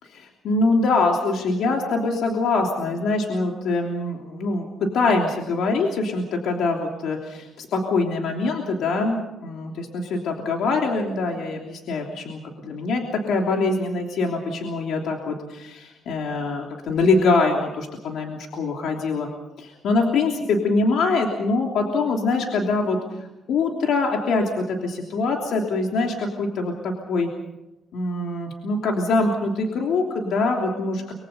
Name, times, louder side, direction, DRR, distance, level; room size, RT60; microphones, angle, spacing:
voice 1, 0.0-4.7 4.9-13.0 13.3-19.3 19.6-27.3 27.9-31.0, left 3 dB, 75° left, 1 dB, 3.1 m, -24 dB
24.5 x 23.5 x 5.6 m, 0.96 s
cardioid pair, 90°, 0 cm